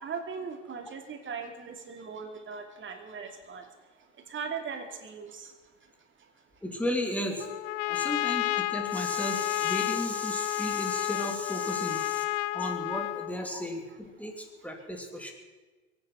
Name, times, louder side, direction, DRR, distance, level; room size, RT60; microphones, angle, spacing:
voice 1, 0.0-3.6 4.3-5.5, right 5 dB, 35° right, 4 dB, 2.9 m, -39 dB
voice 2, 6.6-7.5 7.8-12.2 12.5-15.3, equal, 5° left, 3 dB, 3.1 m, -34 dB
Trumpet, 7.4-13.4, left 19 dB, 75° left, 0.6 m, -31 dB
22.5 x 9.8 x 5.9 m, 1.3 s
hypercardioid pair, 95°, 36 cm